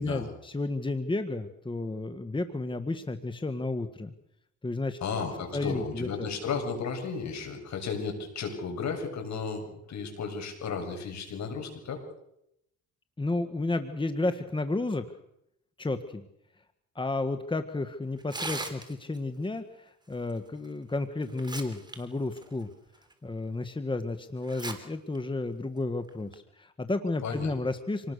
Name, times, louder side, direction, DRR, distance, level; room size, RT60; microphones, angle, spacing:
voice 1, 0.0-4.1 4.6-5.2 5.5-6.3 13.2-15.0 15.8-16.3 16.9-22.7 23.2-28.1, left 2 dB, 15° left, 9 dB, 1.6 m, -32 dB
voice 2, 5.0-12.0 27.2-27.5, left 5 dB, 65° left, 4 dB, 7.4 m, -34 dB
Tearing, 18.2-19.2 20.6-20.7 21.2-22.0 22.3-22.4 23.1-23.2 24.4-24.7 25.1-25.2 26.1-26.3, right 2 dB, 15° right, 4.0 m, -37 dB
27.0 x 19.5 x 6.8 m, 0.79 s
cardioid pair, 90°, 30 cm